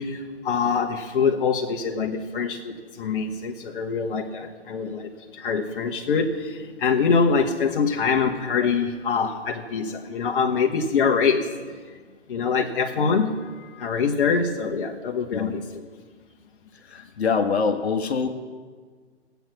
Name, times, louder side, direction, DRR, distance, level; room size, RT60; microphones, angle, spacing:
voice 1, 0.0-11.5 12.3-15.9, left 5 dB, 50° left, 2 dB, 1.3 m, -24 dB
voice 2, 16.9-18.3, left 5 dB, 65° left, 5 dB, 1.3 m, -24 dB
20.0 x 8.2 x 6.0 m, 1.6 s
figure-of-eight pair, 130°, 34 cm